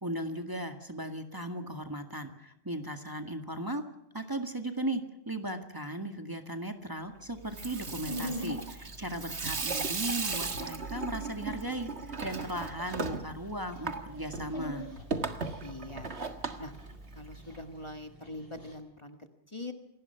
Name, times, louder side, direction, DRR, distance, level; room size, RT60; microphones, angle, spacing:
voice 1, 0.0-3.8 4.1-11.9 12.2-14.9, right 1 dB, 20° right, 6 dB, 2.0 m, -37 dB
Water tap faucet / Sink (filling or washing), 7.4-17.6, right 4 dB, 75° right, 2.0 m, -37 dB
Dog, 7.9-18.7, equal, 60° left, 6.0 m, -46 dB
voice 2, 9.4-9.8 15.6-16.1 16.6-16.7 17.1-19.7, left 2 dB, 25° left, 6 dB, 1.8 m, -44 dB
27.5 x 19.0 x 5.8 m, 0.79 s
omnidirectional pair, 1.1 m